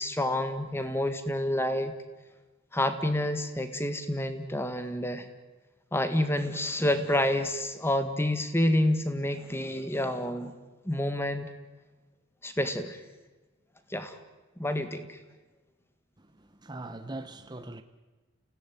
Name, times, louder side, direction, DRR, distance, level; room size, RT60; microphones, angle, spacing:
voice 1, 0.0-1.9 2.7-5.3 5.9-10.5 10.8-11.5 12.4-13.0 13.9-14.2 14.6-15.2, left 1 dB, 10° left, 1.7 m, -28 dB
voice 2, 16.6-17.8, right 2 dB, 20° right, 0.9 m, -40 dB
28.5 x 17.0 x 9.5 m
head